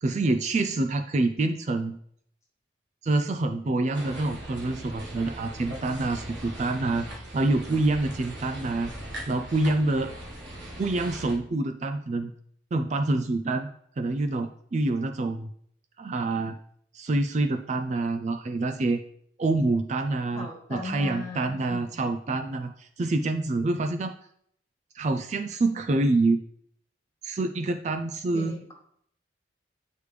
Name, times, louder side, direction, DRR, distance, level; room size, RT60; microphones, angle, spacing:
voice 1, 0.0-2.0 3.0-8.9 9.3-10.1 10.8-12.3 12.7-13.7 14.0-15.5 16.0-16.6 16.9-19.0 19.4-24.1 24.9-26.4 27.2-28.6, right 2 dB, 40° right, 7 dB, 0.3 m, -26 dB
sound 1, 3.9-11.3, right 1 dB, 70° right, 1.4 m, -40 dB
voice 2, 20.3-22.0 28.3-28.7, left 2 dB, 15° left, -3 dB, 1.7 m, -38 dB
8.4 x 4.8 x 3.3 m, 0.66 s
head